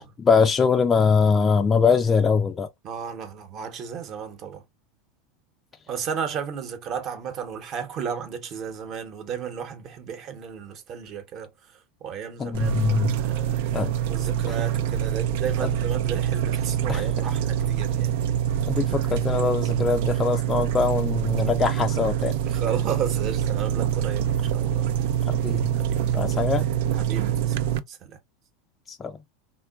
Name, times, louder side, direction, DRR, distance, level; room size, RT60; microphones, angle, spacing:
voice 1, 0.0-2.7 12.4-13.1 13.7-13.9 14.5-14.6 15.6-15.7 16.9-17.1 18.7-22.3 25.3-25.7 26.1-26.7 28.9-29.1, left 5 dB, 20° left, 0.3 m, -22 dB
voice 2, 2.8-4.6 5.9-11.5 12.0-18.1 22.4-24.9 25.7-26.0 26.9-27.6 27.9-28.2, right 7 dB, 45° right, 0.9 m, -34 dB
sound 1, 12.5-27.8, right 10 dB, 70° right, 0.3 m, -25 dB
3.6 x 2.3 x 2.3 m
supercardioid pair, 120°, 0 cm